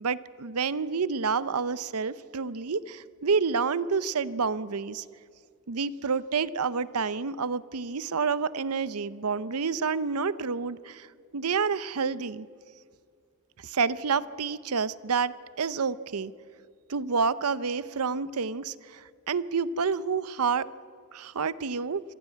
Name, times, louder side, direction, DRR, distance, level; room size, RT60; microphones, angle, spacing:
voice 1, 0.0-5.0 5.7-11.1 11.3-12.5 13.6-16.3 16.9-20.7 21.1-22.0, right 5 dB, 90° right, 17 dB, 0.7 m, -29 dB
26.0 x 15.5 x 9.1 m, 2.2 s
head